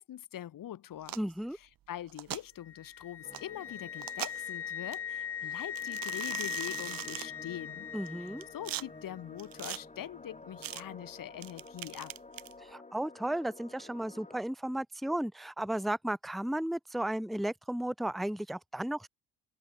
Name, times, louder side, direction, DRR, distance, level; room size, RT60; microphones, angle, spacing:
voice 1, 0.0-1.2 1.5-7.9 8.2-12.1, left 11 dB, 65° left, 2.4 m, -43 dB
sound 1, 1.0-1.3 2.1-2.4 3.3-3.4 4.0-4.5 4.9-5.0 5.8-7.3 8.1-8.8 9.4-9.8 10.6-10.8 11.4-12.5, right 12 dB, 70° right, 1.9 m, -40 dB
voice 2, 1.2-1.6 7.9-8.4 12.6-19.1, right 1 dB, ahead, 0.8 m, -34 dB
Wind instrument woodwind instrument, 2.7-8.6, left 8 dB, 40° left, 0.9 m, -40 dB
sound 2, 3.2-14.4, left 3 dB, 20° left, 5.7 m, -52 dB
cardioid pair, 100°, 36 cm